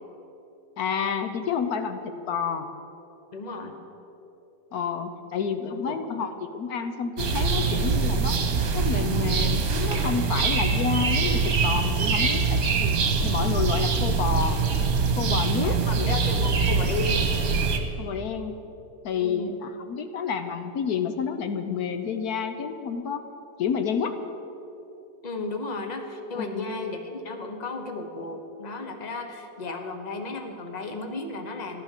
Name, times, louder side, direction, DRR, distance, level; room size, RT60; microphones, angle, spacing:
voice 1, 0.8-2.7 4.7-8.4 8.7-12.9 13.2-14.7 15.2-16.1 18.0-18.5 19.0-23.2 23.6-24.2 26.4-26.7, left 6 dB, 65° left, 8 dB, 1.2 m, -29 dB
voice 2, 3.3-3.8 5.7-6.2 15.6-17.2 19.2-19.6 25.2-31.8, left 3 dB, 25° left, 5 dB, 1.1 m, -34 dB
sound 1, 7.2-17.8, right 5 dB, 60° right, 1.6 m, -24 dB
14.5 x 11.5 x 6.6 m, 3.0 s
omnidirectional pair, 1.9 m